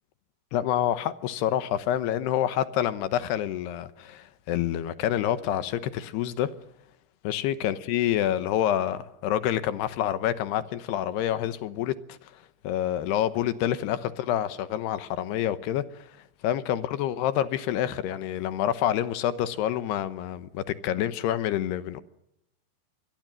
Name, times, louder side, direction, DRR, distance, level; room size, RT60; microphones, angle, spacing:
voice 1, 0.5-6.5 7.2-12.3 12.6-16.1 16.4-22.0, left 11 dB, 70° left, 2.7 m, -27 dB
26.0 x 21.5 x 7.6 m
omnidirectional pair, 5.6 m